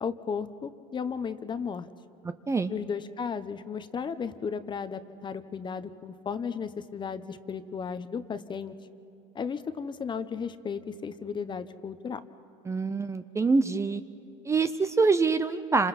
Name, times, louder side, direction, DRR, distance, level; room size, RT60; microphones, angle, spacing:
voice 1, 0.0-1.9 2.7-8.8 9.3-12.2, left 6 dB, 25° left, 12 dB, 0.9 m, -34 dB
voice 2, 12.7-14.0 14.4-15.9, right 4 dB, 15° right, 11 dB, 0.6 m, -25 dB
28.0 x 26.5 x 4.2 m, 2.8 s
supercardioid pair, 110°, 17 cm